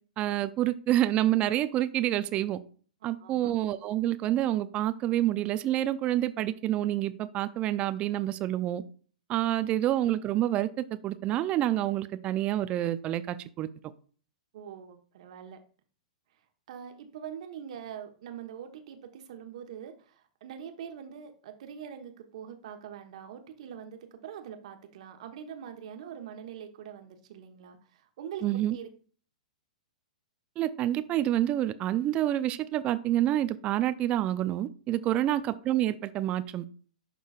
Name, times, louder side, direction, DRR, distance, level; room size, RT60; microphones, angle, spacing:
voice 1, 0.2-2.6 3.0-8.8 9.3-13.7 28.4-28.8 30.6-36.6, right 13 dB, 30° right, 0.4 m, -28 dB
voice 2, 3.0-3.5 14.5-15.6 16.7-28.5 28.7-28.9 35.1-35.4, right 8 dB, 60° right, 1.2 m, -43 dB
11.5 x 3.8 x 2.4 m
hypercardioid pair, 110°, 4 cm